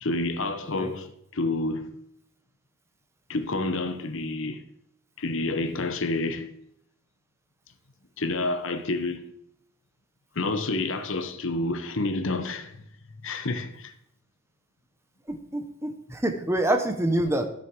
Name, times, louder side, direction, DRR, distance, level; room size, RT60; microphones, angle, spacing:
voice 1, 0.0-1.1 1.3-1.9 3.3-4.6 5.2-6.5 8.2-9.3 10.3-12.9 13.2-13.9, left 2 dB, 60° left, 0.9 m, -29 dB
voice 2, 15.3-17.5, right 1 dB, 10° right, 0.9 m, -26 dB
12.5 x 6.6 x 4.6 m
head